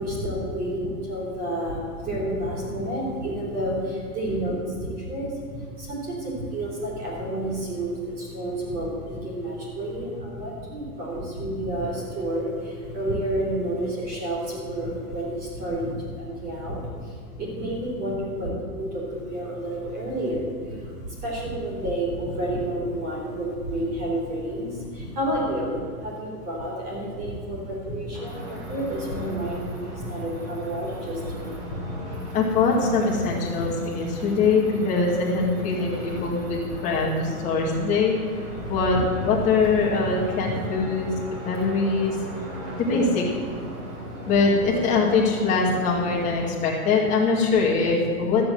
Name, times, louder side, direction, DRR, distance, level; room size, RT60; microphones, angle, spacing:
voice 1, 0.0-32.2 36.2-36.3 38.6-38.7 40.5-40.6, right 1 dB, 20° right, -4 dB, 3.6 m, -30 dB
sound 1, 28.1-46.5, equal, 50° right, 3.4 m, -37 dB
voice 2, 32.3-38.1 38.7-39.0 39.2-42.2 42.8-43.3 44.3-48.4, left 4 dB, 15° left, -3 dB, 2.0 m, -23 dB
13.5 x 7.7 x 7.7 m, 2.1 s
hypercardioid pair, 170°, 45 cm